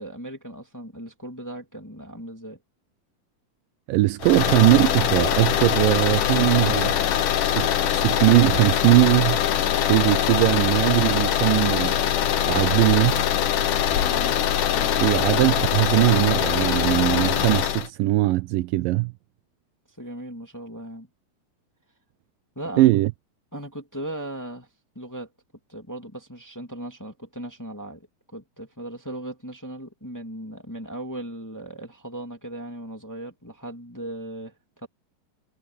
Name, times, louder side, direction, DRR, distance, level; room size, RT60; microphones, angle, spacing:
voice 1, 0.0-2.6 13.9-15.3 19.9-21.1 22.6-22.9 23.5-24.7 24.9-25.3 25.7-28.1 28.3-34.9, right 1 dB, 5° left, 2.0 m, -37 dB
voice 2, 3.9-6.9 7.5-9.4 9.9-12.0 12.5-13.2 15.0-19.1 22.8-23.1, right 19 dB, 80° right, 2.1 m, -20 dB
sound 1, 4.2-17.9, left 10 dB, 65° left, 2.7 m, -23 dB
omnidirectional pair, 4.2 m